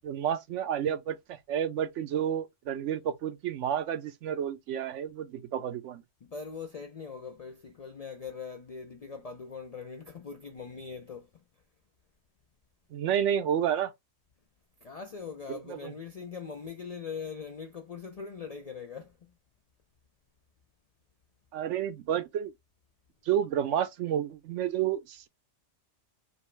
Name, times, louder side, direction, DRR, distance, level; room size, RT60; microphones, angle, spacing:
voice 1, 0.0-6.0 12.9-13.9 15.5-15.9 21.5-22.5 23.3-25.3, right 9 dB, 85° right, 0.9 m, -30 dB
voice 2, 6.2-11.3 14.8-19.3, left 5 dB, 55° left, 0.4 m, -41 dB
5.3 x 2.0 x 3.1 m
omnidirectional pair, 1.2 m